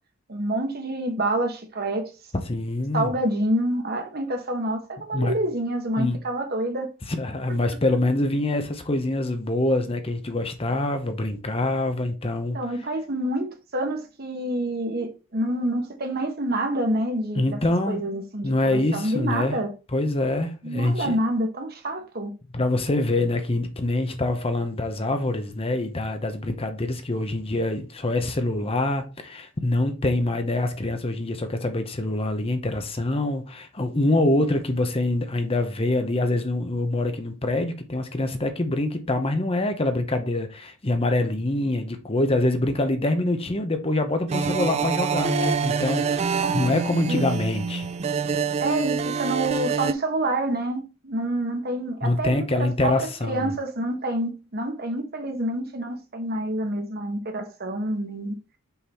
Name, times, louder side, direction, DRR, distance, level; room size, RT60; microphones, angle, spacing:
voice 1, 0.3-2.1 2.9-6.9 12.5-17.6 17.9-19.7 20.6-22.3 46.4-46.6 47.1-47.3 48.6-58.3, right 1 dB, 50° right, 1.3 m, -27 dB
voice 2, 2.5-3.1 5.1-5.3 6.0-6.2 7.1-12.6 17.4-18.0 18.4-19.6 19.9-21.2 22.5-47.9 52.0-53.5, left 2 dB, 30° left, 0.8 m, -25 dB
sound 1, 44.3-49.9, right 5 dB, 30° right, 0.4 m, -26 dB
5.6 x 4.0 x 4.2 m
head